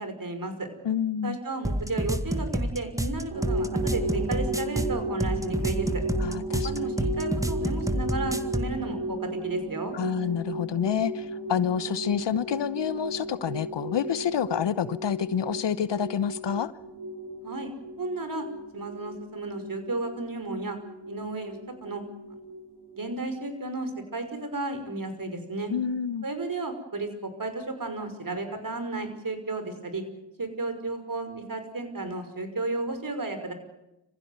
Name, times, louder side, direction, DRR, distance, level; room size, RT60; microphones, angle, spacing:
voice 1, 0.0-0.7 1.2-6.0 6.6-10.0 17.4-17.7 18.0-18.5 18.7-20.8 21.1-22.0 23.0-25.7 26.2-30.0 30.4-33.5, right 2 dB, 40° right, 8 dB, 5.6 m, -33 dB
voice 2, 0.8-1.4 6.2-6.7 7.0-7.1 9.9-16.7 25.7-26.3, left 8 dB, 60° left, 17 dB, 1.0 m, -28 dB
sound 1, 1.6-8.7, equal, 5° right, 2.1 m, -28 dB
sound 2, 3.3-23.1, right 2 dB, 80° right, 7.8 m, -35 dB
26.5 x 15.5 x 9.5 m, 0.91 s
supercardioid pair, 40°, 50 cm